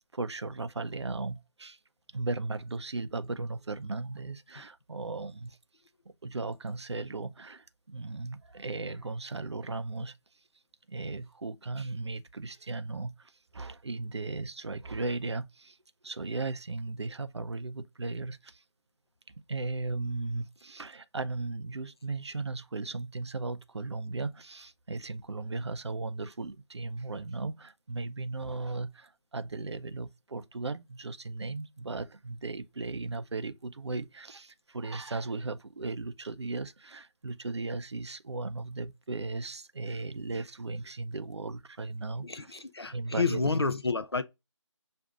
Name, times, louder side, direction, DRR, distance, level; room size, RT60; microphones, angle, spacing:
voice 1, 0.1-1.8 2.1-5.6 6.2-10.2 10.9-15.8 16.0-18.6 19.5-42.5 42.9-43.6, right 3 dB, 60° right, 0.5 m, -36 dB
voice 2, 42.2-44.2, left 4 dB, 55° left, 0.4 m, -30 dB
6.3 x 2.5 x 2.3 m
figure-of-eight pair, 160°, 16 cm